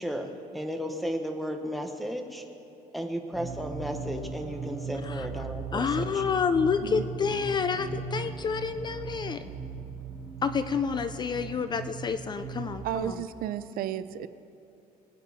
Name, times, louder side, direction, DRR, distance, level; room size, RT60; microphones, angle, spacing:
voice 1, 0.0-2.4 2.9-6.2, equal, ahead, 3 dB, 0.8 m, -34 dB
sound 1, 3.3-12.9, right 5 dB, 35° right, 1.1 m, -38 dB
sound 2, 3.5-11.9, left 1 dB, 85° left, 3.1 m, -54 dB
voice 2, 5.7-9.5 10.4-13.2, left 6 dB, 30° left, 11 dB, 0.3 m, -29 dB
voice 3, 12.8-14.3, right 11 dB, 65° right, 13 dB, 0.4 m, -33 dB
21.5 x 9.1 x 4.1 m, 2.7 s
cardioid pair, 160°, 16 cm